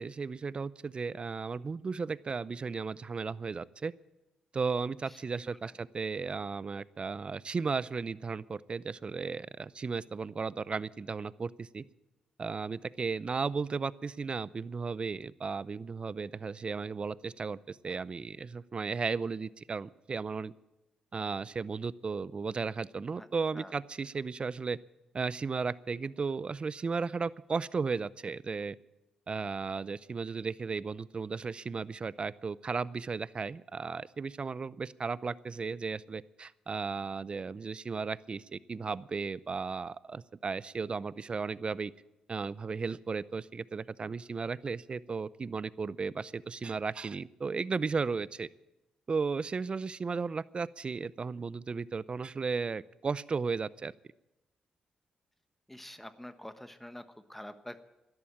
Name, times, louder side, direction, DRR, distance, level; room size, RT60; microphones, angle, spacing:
voice 1, 0.0-3.9 4.5-11.8 12.4-20.5 21.1-24.8 25.1-28.8 29.3-41.9 42.3-48.5 49.1-53.9, right 4 dB, 40° right, 20 dB, 0.5 m, -35 dB
voice 2, 55.7-57.0 57.3-57.8, left 1 dB, 5° left, 10 dB, 1.3 m, -46 dB
12.5 x 11.0 x 8.8 m, 0.97 s
supercardioid pair, 50°, 3 cm